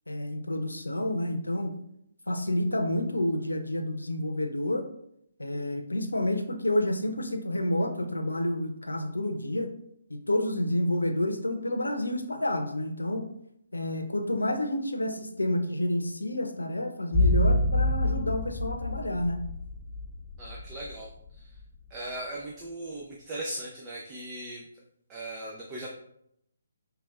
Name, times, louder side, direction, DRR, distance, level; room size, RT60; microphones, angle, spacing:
voice 1, 0.1-1.7 2.3-4.8 5.4-9.7 10.3-13.3 13.7-19.4, left 1 dB, 85° left, 6 dB, 0.7 m, -29 dB
sound 1, 17.1-21.4 21.6-21.7, left 1 dB, 10° left, 1.0 m, -27 dB
voice 2, 20.4-21.5 21.9-24.6 25.1-25.9, right 1 dB, 20° right, -3 dB, 0.7 m, -38 dB
5.8 x 3.3 x 2.5 m, 0.76 s
figure-of-eight pair, 140°, 0 cm